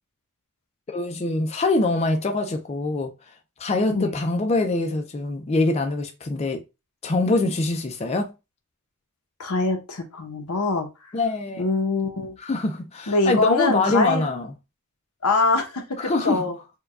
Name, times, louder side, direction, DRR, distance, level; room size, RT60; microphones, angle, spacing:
voice 1, 0.9-3.1 3.6-6.6 7.0-8.3 11.1-11.6 12.4-14.5 16.0-16.5, left 2 dB, 30° left, 0.4 m, -24 dB
voice 2, 9.4-11.1 11.6-12.4 13.1-14.3 15.2-16.6, left 3 dB, 90° left, 0.8 m, -24 dB
4.5 x 2.3 x 2.2 m
head